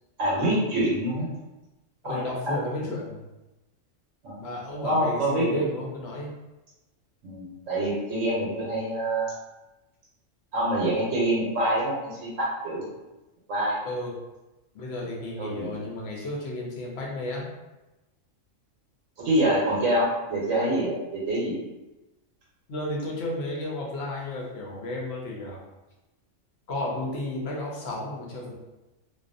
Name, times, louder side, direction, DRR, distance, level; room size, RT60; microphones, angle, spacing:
voice 1, 0.2-1.3 2.0-2.2 4.2-4.5 4.8-5.6 7.2-9.3 10.5-12.8 13.5-13.8 15.4-15.7 19.2-21.6, right 1 dB, 80° right, -6 dB, 1.0 m, -26 dB
voice 2, 2.0-3.2 4.4-6.3 13.8-14.1 14.7-17.5 22.7-25.6 26.7-28.5, left 1 dB, 60° left, -2 dB, 0.8 m, -33 dB
2.5 x 2.3 x 2.5 m, 1.0 s
omnidirectional pair, 1.3 m